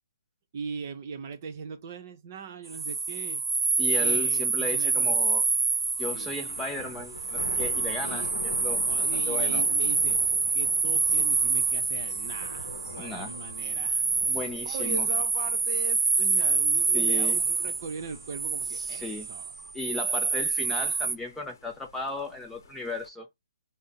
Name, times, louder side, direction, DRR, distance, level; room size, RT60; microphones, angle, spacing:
voice 1, 0.5-3.4 4.0-5.2 6.1-6.4 8.0-8.3 8.8-19.7, right 5 dB, 35° right, 0.7 m, -40 dB
sound 1, 2.7-21.1, right 4 dB, 80° right, 0.5 m, -27 dB
voice 2, 3.8-5.4 6.0-9.6 13.0-13.3 14.3-15.1 16.9-17.4 18.7-19.3 19.7-23.3, left 2 dB, 5° left, 0.4 m, -36 dB
Thunder, 5.3-23.1, left 3 dB, 55° left, 0.8 m, -46 dB
2.6 x 2.0 x 3.9 m
hypercardioid pair, 150°, 2 cm